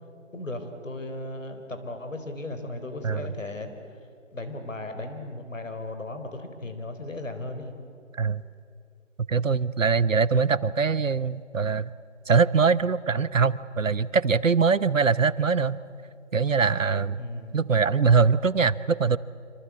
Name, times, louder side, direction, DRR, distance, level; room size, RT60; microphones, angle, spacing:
voice 1, 0.3-3.7 4.3-7.7 17.2-17.6, left 2 dB, 80° left, 7 dB, 4.6 m, -36 dB
voice 2, 9.3-11.9 12.3-15.8 16.3-17.2 17.5-19.2, right 5 dB, 80° right, 18 dB, 1.0 m, -22 dB
26.5 x 25.5 x 8.5 m, 2.4 s
figure-of-eight pair, 175°, 38 cm